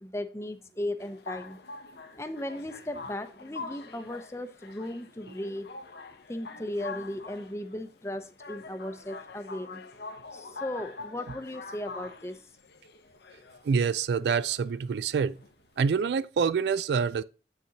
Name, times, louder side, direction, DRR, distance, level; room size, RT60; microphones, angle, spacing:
voice 1, 0.0-1.6 2.2-5.7 6.3-9.8 10.3-12.4, left 1 dB, 15° left, 0.6 m, -36 dB
sound 1, 1.0-15.8, left 4 dB, 70° left, 0.8 m, -45 dB
voice 2, 13.6-15.4 15.8-17.2, right 6 dB, 75° right, 0.3 m, -26 dB
8.0 x 6.5 x 2.8 m
head